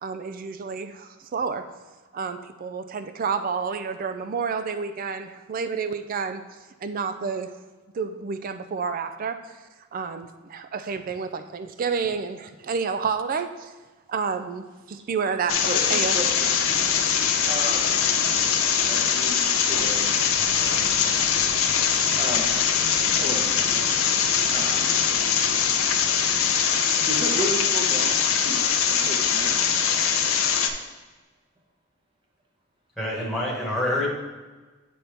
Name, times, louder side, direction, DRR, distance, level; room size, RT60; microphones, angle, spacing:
voice 1, 0.0-1.6 2.1-6.4 6.8-7.5 7.9-9.6 9.9-13.7 14.1-15.6 15.9-16.2, right 5 dB, 40° right, 9 dB, 0.3 m, -29 dB
sound 1, 15.5-30.7, left 7 dB, 70° left, 0.6 m, -22 dB
voice 2, 15.6-16.5 17.4-17.8 18.9-20.1 20.6-21.2 22.1-23.9 24.5-24.9 27.0-28.6 28.9-29.6, right 1 dB, 25° right, -1 dB, 0.9 m, -34 dB
voice 3, 33.0-34.1, left 1 dB, ahead, -4 dB, 1.4 m, -26 dB
9.2 x 4.2 x 3.4 m, 1.3 s
head